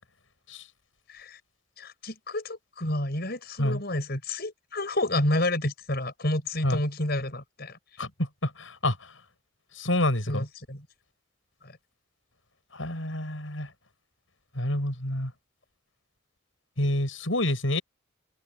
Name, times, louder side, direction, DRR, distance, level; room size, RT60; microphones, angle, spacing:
voice 1, 1.8-7.8 10.3-10.9 11.6-11.7, left 1 dB, 55° left, 7.0 m, -30 dB
voice 2, 8.4-9.0 9.8-10.5 12.7-13.7 14.6-15.3 16.8-17.8, left 1 dB, 80° left, 7.0 m, -27 dB
open air
head